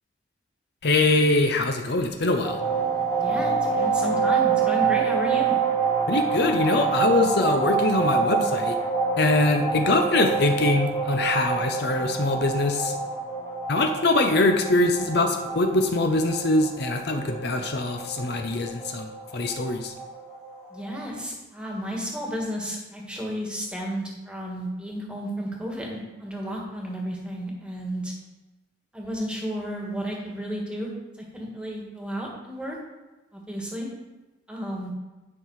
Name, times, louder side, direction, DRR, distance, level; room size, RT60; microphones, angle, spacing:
voice 1, 0.8-2.6 6.1-8.7 9.2-12.9 13.7-19.9, left 2 dB, 55° left, 4 dB, 0.7 m, -23 dB
sound 1, 2.4-21.0, right 5 dB, 30° left, 1.9 m, -27 dB
voice 2, 3.2-5.5 20.7-28.1 28.9-30.9 31.2-32.8 33.3-33.9 34.5-34.9, equal, 5° right, -2 dB, 1.6 m, -32 dB
9.8 x 5.7 x 4.8 m, 1.1 s
head